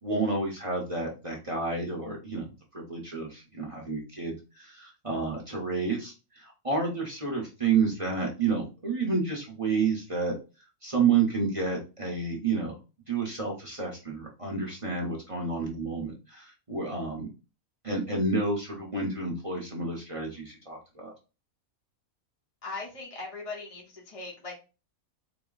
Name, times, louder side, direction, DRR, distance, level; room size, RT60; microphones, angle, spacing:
voice 1, 0.0-2.5 2.9-10.3 10.8-12.7 13.1-17.3 17.8-21.1, right 4 dB, 25° right, -2 dB, 0.9 m, -30 dB
voice 2, 22.6-24.6, left 3 dB, 30° left, -2 dB, 0.9 m, -39 dB
3.9 x 2.2 x 3.8 m, 0.30 s
omnidirectional pair, 1.5 m